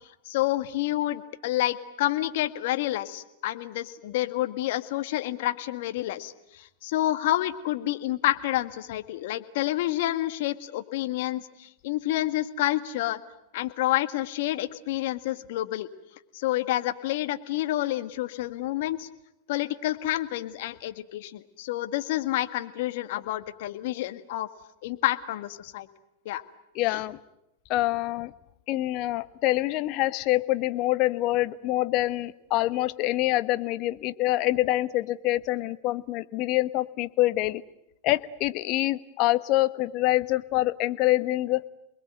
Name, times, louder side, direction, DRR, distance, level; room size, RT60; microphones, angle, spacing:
voice 1, 0.3-13.2 13.5-15.9 16.3-19.1 19.5-24.5 24.8-25.9 26.3-26.4 26.9-27.0, left 15 dB, 65° left, 10 dB, 1.8 m, -29 dB
voice 2, 26.7-27.2 27.7-28.3 28.7-37.6 38.0-41.6, left 17 dB, 50° left, 13 dB, 1.1 m, -26 dB
28.0 x 21.0 x 9.2 m, 0.86 s
hypercardioid pair, 105°, 0 cm